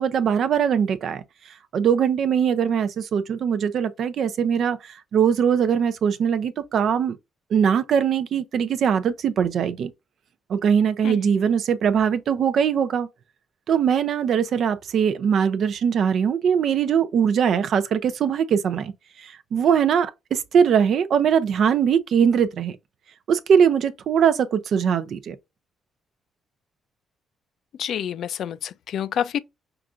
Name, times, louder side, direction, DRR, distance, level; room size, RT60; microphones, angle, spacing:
voice 1, 0.0-7.2 7.5-9.9 10.5-13.1 13.7-18.9 19.2-22.8 23.3-25.4, right 7 dB, 65° right, 0.6 m, -21 dB
voice 2, 27.8-29.4, left 9 dB, 70° left, 0.4 m, -28 dB
5.7 x 2.5 x 2.4 m
cardioid pair, 90°, 0 cm